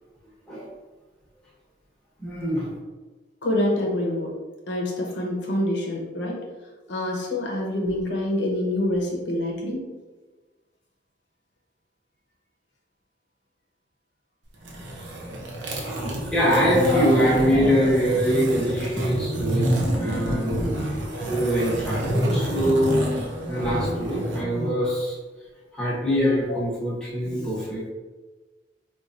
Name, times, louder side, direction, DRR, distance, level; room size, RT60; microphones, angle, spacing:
voice 1, 2.2-2.7 15.7-19.7 19.9-20.6 21.0-25.2 25.7-27.9, equal, 5° left, -7 dB, 1.0 m, -23 dB
voice 2, 3.4-4.3 4.7-6.4 6.9-9.8 21.8-22.0 26.5-26.6, left 1 dB, 70° left, -2 dB, 0.7 m, -26 dB
sound 1, 14.5-24.4, equal, 75° right, 0.7 m, -28 dB
4.3 x 2.3 x 2.5 m, 1.3 s
head